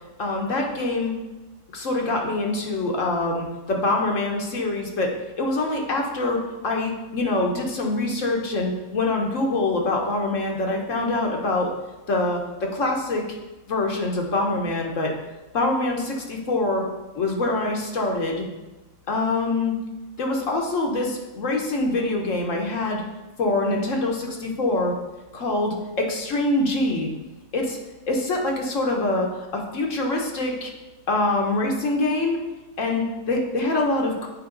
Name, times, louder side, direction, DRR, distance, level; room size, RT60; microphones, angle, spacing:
voice 1, 0.2-1.1 1.7-6.4 6.6-11.7 12.1-13.2 13.7-15.1 15.5-16.9 17.1-18.5 19.1-19.7 20.2-23.0 23.4-24.9 25.3-27.1 27.5-27.8 28.1-30.7 31.1-32.4 32.8-34.3, left 2 dB, 65° left, 0 dB, 1.3 m, -24 dB
8.8 x 4.5 x 3.8 m, 1.1 s
omnidirectional pair, 1.4 m